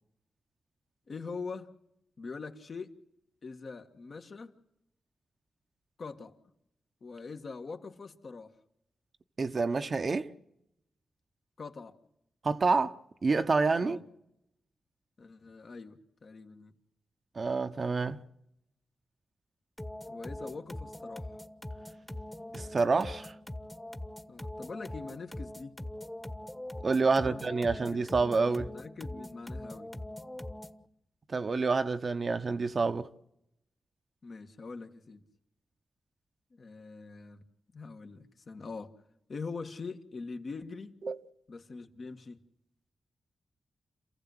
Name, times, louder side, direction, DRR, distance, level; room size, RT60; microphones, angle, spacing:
voice 1, 1.1-1.7 2.2-2.9 3.4-4.5 6.0-6.4 7.0-8.5 11.6-12.0 13.8-14.0 15.2-16.7 20.1-21.3 24.3-25.7 27.0-28.1 28.6-29.9 34.2-35.2 36.5-37.5 37.7-38.9 39.3-41.0 41.5-42.4, left 4 dB, 60° left, 1.8 m, -43 dB
voice 2, 9.4-10.3 12.4-12.9 13.2-14.0 17.4-18.2 22.5-23.3 26.8-28.7 31.3-33.1 41.0-41.2, right 4 dB, 50° right, 0.9 m, -28 dB
sound 1, 19.8-30.9, left 1 dB, 10° left, 1.3 m, -42 dB
27.5 x 15.0 x 8.0 m
cardioid pair, 50°, 0 cm